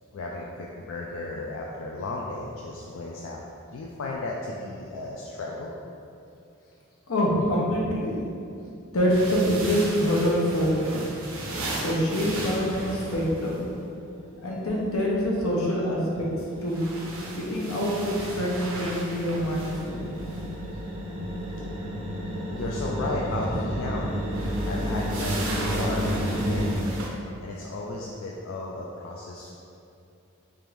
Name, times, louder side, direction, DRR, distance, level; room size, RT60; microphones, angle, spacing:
voice 1, 0.1-5.7 22.6-24.1 24.6-26.8 27.4-29.6, left 2 dB, 70° left, -3 dB, 0.4 m, -34 dB
voice 2, 7.1-8.2 8.9-11.1 11.8-13.7 14.4-16.3 16.6-16.9 17.3-20.1 23.4-23.5, equal, 85° left, -4 dB, 0.8 m, -25 dB
sound 1, 9.1-13.7 16.4-20.5 24.2-27.1, right 2 dB, 75° right, 0.7 m, -36 dB
sound 2, 13.9-26.7, equal, 30° right, 0.6 m, -32 dB
3.5 x 2.6 x 4.6 m, 2.6 s
head